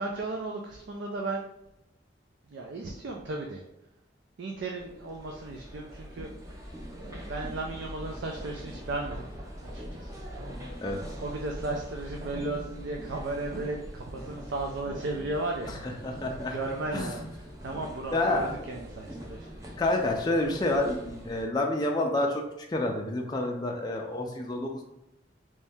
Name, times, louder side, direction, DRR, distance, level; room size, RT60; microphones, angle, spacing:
voice 1, 0.0-1.5 2.5-3.6 4.4-6.3 7.0-9.2 9.6-10.7 11.2-19.7, right 2 dB, 75° right, 1 dB, 0.4 m, -35 dB
sound 1, 4.8-21.4, equal, 20° right, 0.6 m, -42 dB
voice 2, 16.0-16.6 16.9-17.2 18.1-18.5 19.8-22.4 22.7-24.8, left 2 dB, 25° left, 1 dB, 0.4 m, -28 dB
3.1 x 2.7 x 3.4 m, 0.87 s
head